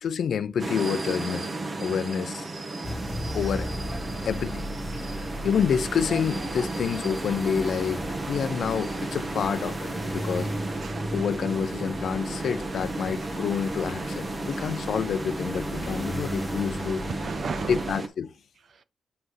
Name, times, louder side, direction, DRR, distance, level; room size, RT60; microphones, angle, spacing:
voice 1, 0.0-1.5 1.8-2.4 3.3-3.7 4.3-4.7 4.9-10.5 11.1-17.0 17.7-18.3, left 7 dB, 75° left, 0.6 m, -28 dB
sound 1, 0.6-18.1, right 2 dB, 45° right, 1.2 m, -34 dB
sound 2, 2.8-18.0, left 1 dB, 10° left, 1.3 m, -37 dB
voice 2, 2.9-3.4 10.8-11.3 17.1-17.9 18.7-18.8, right 6 dB, 65° right, 0.5 m, -37 dB
7.7 x 5.6 x 3.2 m
cardioid pair, 65°, 0 cm